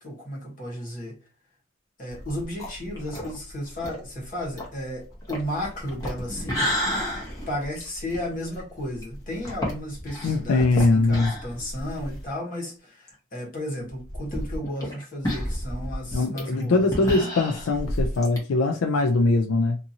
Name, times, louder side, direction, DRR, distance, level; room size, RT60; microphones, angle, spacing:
voice 1, 0.0-1.2 2.0-6.7 7.5-17.3, left 1 dB, 40° left, 1.1 m, -34 dB
sound 1, 2.1-12.3 12.7-12.8 13.1-13.2 13.9-18.4, equal, 15° left, 0.8 m, -32 dB
voice 2, 10.2-11.3 16.1-19.8, left 3 dB, 80° left, 0.4 m, -22 dB
2.6 x 2.5 x 2.7 m
head